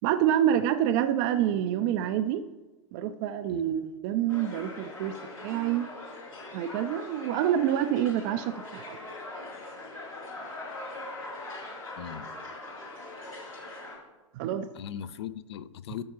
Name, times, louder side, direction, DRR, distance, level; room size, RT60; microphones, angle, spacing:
voice 1, 0.0-2.4 2.9-5.2 5.4-5.9 6.5-9.0 14.3-14.7, right 10 dB, 35° right, 8 dB, 0.4 m, -27 dB
sound 1, 4.3-14.0, left 2 dB, 85° left, 2.9 m, -41 dB
voice 2, 12.0-12.3 14.7-16.0, left 10 dB, 55° left, 16 dB, 0.5 m, -39 dB
13.0 x 6.4 x 2.9 m, 1.2 s
figure-of-eight pair, 100°, 17 cm